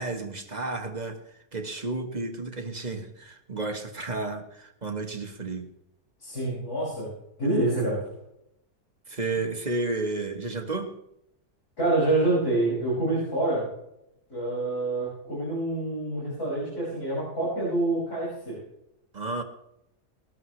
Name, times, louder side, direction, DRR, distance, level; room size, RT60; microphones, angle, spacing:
voice 1, 0.0-5.7 9.1-10.9 19.1-19.4, right 3 dB, 30° right, 4 dB, 1.3 m, -32 dB
voice 2, 6.2-7.1 7.4-8.0 11.8-13.7 14.3-18.6, right 2 dB, 70° left, -8 dB, 6.7 m, -26 dB
20.0 x 12.5 x 3.2 m, 0.82 s
omnidirectional pair, 1.7 m